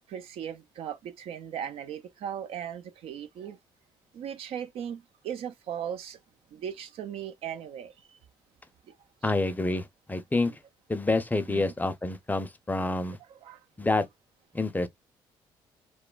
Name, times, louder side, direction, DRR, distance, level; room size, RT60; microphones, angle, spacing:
voice 1, 0.1-3.6 4.1-6.2 6.5-8.1 8.9-9.0 10.5-10.6 11.5-11.7 13.3-13.6, right 9 dB, 70° right, 0.5 m, -38 dB
voice 2, 9.2-10.5 10.9-13.2 13.8-14.0 14.5-14.9, left 2 dB, 15° left, 0.6 m, -27 dB
3.0 x 2.1 x 2.2 m
supercardioid pair, 60°, 10 cm